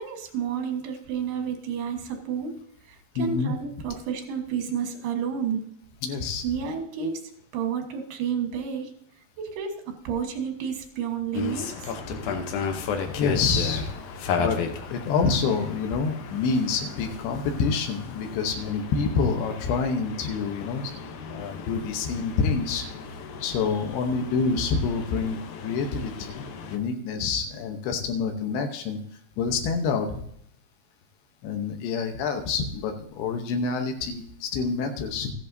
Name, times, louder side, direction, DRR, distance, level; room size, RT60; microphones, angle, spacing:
voice 1, 0.0-2.6 2.9-5.8 6.4-8.9 9.4-12.0, right 7 dB, 85° right, 4 dB, 3.4 m, -31 dB
voice 2, 3.2-3.5 6.0-6.4 12.1-12.2 13.2-13.9 14.4-20.9 21.3-22.9 23.4-29.0 29.4-30.2 31.4-35.3, left 5 dB, 90° left, 5 dB, 3.0 m, -27 dB
sound 1, 11.3-26.8, left 5 dB, 70° left, 1.9 m, -34 dB
14.5 x 10.5 x 2.7 m, 0.68 s
omnidirectional pair, 4.5 m